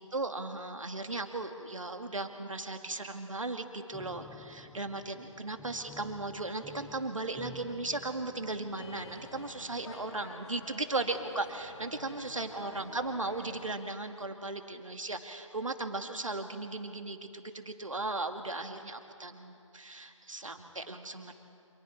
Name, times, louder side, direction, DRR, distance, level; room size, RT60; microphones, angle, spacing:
voice 1, 0.0-21.3, right 2 dB, 75° right, 6 dB, 2.2 m, -37 dB
Piano, 3.9-9.8, left 2 dB, ahead, 1.2 m, -52 dB
sound 1, 8.7-13.7, left 3 dB, 55° left, 2.2 m, -50 dB
30.0 x 27.5 x 4.4 m, 2.7 s
figure-of-eight pair, 140°, 17 cm